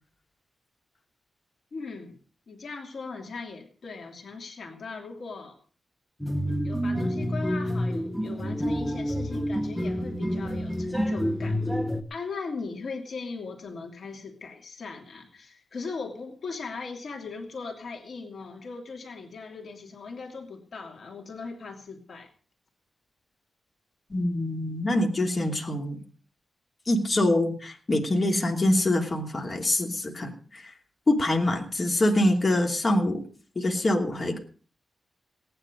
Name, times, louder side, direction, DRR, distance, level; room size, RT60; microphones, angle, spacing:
voice 1, 1.7-2.2 2.5-5.6 6.6-11.6 12.1-22.3, left 4 dB, 65° left, 2 dB, 2.6 m, -39 dB
sound 1, 6.2-12.0, equal, ahead, 1.2 m, -28 dB
voice 2, 24.1-26.0 26.9-30.7 31.1-33.2 33.5-34.4, left 1 dB, 35° left, 1 dB, 2.8 m, -25 dB
18.0 x 10.0 x 5.2 m, 0.42 s
wide cardioid pair, 125°, 0 cm